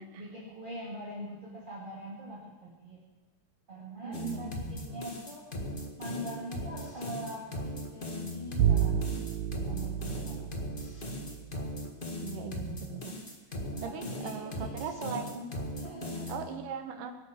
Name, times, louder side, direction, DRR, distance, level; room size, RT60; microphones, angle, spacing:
voice 1, 0.1-3.0 3.7-5.4 6.0-8.9 9.7-10.5 13.7-15.2 15.7-16.4, equal, 15° right, -6 dB, 2.0 m, -43 dB
voice 2, 4.0-4.6 12.2-13.2 13.8-15.5 16.3-17.1, right 7 dB, 70° right, 6 dB, 2.7 m, -39 dB
sound 1, 4.1-16.5, left 1 dB, 75° left, 0.4 m, -39 dB
Bowed string instrument, 8.6-11.7, right 9 dB, 85° right, 2.4 m, -30 dB
23.0 x 8.8 x 6.5 m, 1.2 s
omnidirectional pair, 4.2 m